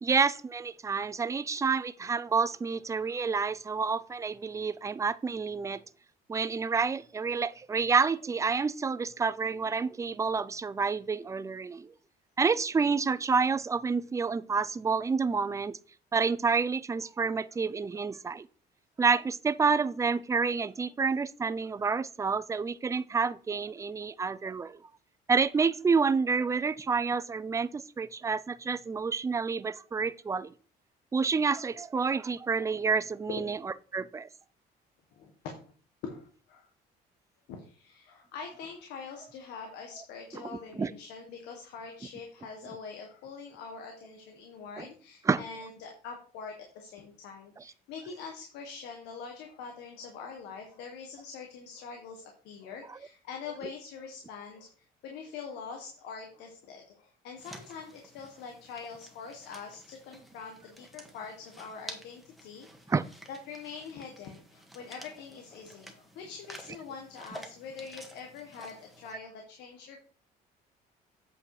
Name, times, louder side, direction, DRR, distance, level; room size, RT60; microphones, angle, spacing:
voice 1, 0.0-5.8 6.3-11.9 12.4-15.8 16.1-18.5 19.0-24.8 25.3-30.5 31.1-33.6 33.9-34.3 40.7-40.9 44.8-44.9 45.3-45.4 52.9-53.0 62.9-63.0, right 5 dB, 20° right, 0.5 m, -29 dB
voice 2, 36.0-36.6 37.5-62.9 63.3-70.0, left 5 dB, 85° left, 1.6 m, -44 dB
sound 1, 57.4-69.1, equal, ahead, 1.7 m, -51 dB
8.4 x 4.9 x 4.9 m
cardioid pair, 110°, 17 cm